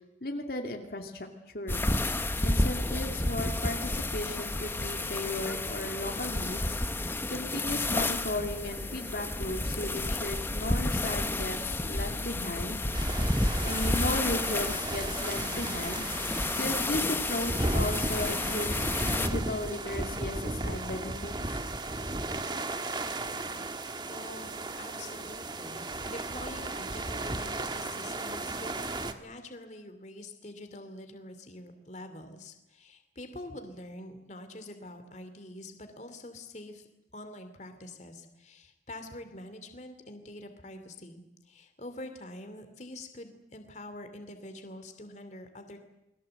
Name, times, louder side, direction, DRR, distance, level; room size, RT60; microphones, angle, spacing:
voice 1, 0.2-1.3 1.5-1.9 2.4-6.8 7.3-12.8 13.6-16.3 16.6-21.6, left 1 dB, 55° left, 3 dB, 2.5 m, -35 dB
sound 1, 1.7-19.3, left 2 dB, 10° left, 0.9 m, -31 dB
sound 2, 12.9-29.1, right 2 dB, 25° right, 1.4 m, -35 dB
voice 2, 24.1-24.5 24.8-36.9 37.1-45.8, left 1 dB, 40° left, 7 dB, 2.7 m, -45 dB
29.0 x 21.5 x 7.9 m, 0.88 s
head